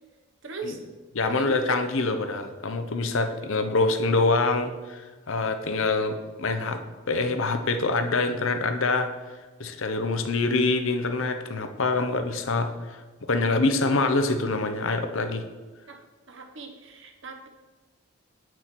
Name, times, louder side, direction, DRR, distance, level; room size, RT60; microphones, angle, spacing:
voice 1, 0.4-0.8 1.2-1.8 3.3-3.4 15.9-16.0 16.3-17.5, right 3 dB, 55° right, 4 dB, 1.0 m, -38 dB
voice 2, 1.1-5.0 5.3-6.8 7.1-9.1 9.6-12.7 13.3-15.4, left 3 dB, 65° left, 7 dB, 0.7 m, -25 dB
8.3 x 6.1 x 4.5 m, 1.3 s
head